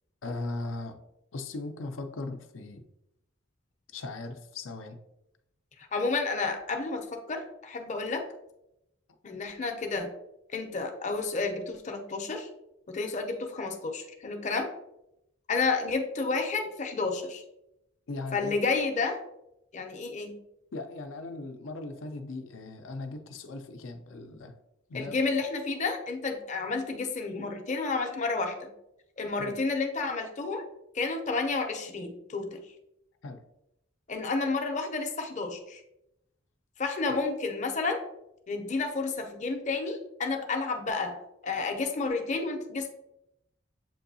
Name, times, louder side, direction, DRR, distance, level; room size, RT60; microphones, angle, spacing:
voice 1, 0.2-1.0 1.3-2.9 3.9-5.0 18.1-18.6 20.7-24.5 24.9-25.2 29.3-29.6 33.2-33.4, left 2 dB, 80° left, 6 dB, 0.5 m, -38 dB
voice 2, 5.9-8.3 9.2-10.1 10.5-12.5 12.9-14.7 15.5-17.4 18.3-19.2 19.7-20.4 24.9-28.7 29.2-30.6 30.9-32.6 34.1-35.8 36.8-38.0 38.5-41.2 41.4-42.9, left 3 dB, 40° left, 4 dB, 0.6 m, -31 dB
7.4 x 2.7 x 2.6 m, 0.84 s
head